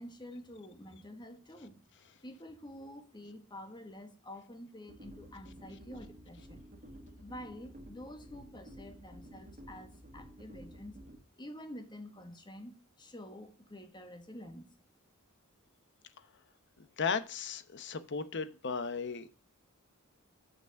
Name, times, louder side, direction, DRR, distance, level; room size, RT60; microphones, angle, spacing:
voice 1, 0.0-1.8 2.2-6.6 7.2-10.9 11.4-14.7, left 1 dB, 20° left, 1.3 m, -48 dB
sound 1, 4.9-11.2, equal, 40° right, 1.6 m, -52 dB
voice 2, 17.0-19.3, left 5 dB, 55° left, 0.8 m, -35 dB
6.8 x 6.0 x 6.4 m
head